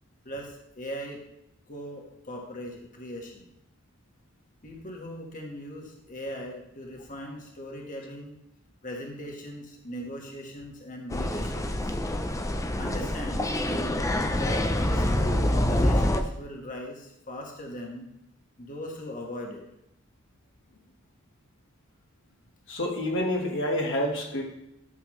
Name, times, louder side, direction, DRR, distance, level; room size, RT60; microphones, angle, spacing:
voice 1, 0.2-1.2 1.7-3.5 4.6-8.4 8.8-11.9 12.8-18.1 18.6-19.6, equal, 40° left, 1 dB, 1.5 m, -39 dB
sound 1, 11.1-16.2, left 1 dB, 15° left, 0.6 m, -26 dB
voice 2, 22.7-24.4, left 1 dB, 65° left, 0 dB, 1.5 m, -28 dB
12.5 x 7.0 x 3.2 m, 0.84 s
head